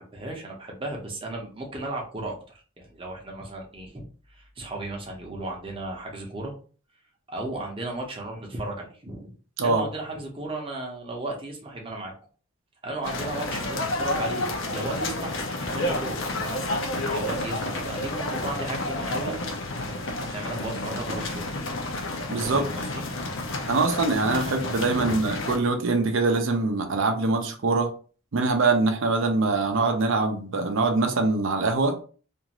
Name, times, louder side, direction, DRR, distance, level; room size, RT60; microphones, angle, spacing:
voice 1, 0.0-2.4 2.8-4.0 4.3-6.5 7.3-9.3 9.6-12.1 12.8-15.3 15.7-16.6 17.0-19.4 20.2-21.5 22.4-23.0 25.0-25.2, right 2 dB, 25° right, 0 dB, 0.7 m, -35 dB
sound 1, 13.0-25.6, left 2 dB, 60° left, 0.6 m, -30 dB
voice 2, 22.3-22.7 23.7-27.9 28.3-32.0, right 3 dB, 65° right, 5 dB, 0.5 m, -23 dB
2.5 x 2.4 x 2.9 m, 0.40 s
head